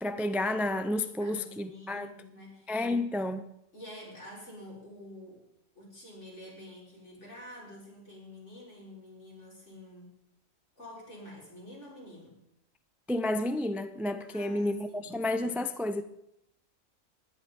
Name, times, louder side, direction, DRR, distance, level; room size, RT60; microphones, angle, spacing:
voice 1, 0.0-2.1 2.7-3.5 13.1-16.0, left 1 dB, ahead, 0.3 m, -31 dB
voice 2, 1.2-2.8 3.7-5.4 5.7-10.2 10.8-12.4 14.2-15.2, left 1 dB, 60° left, 6.6 m, -48 dB
20.0 x 11.0 x 5.4 m
omnidirectional pair, 1.4 m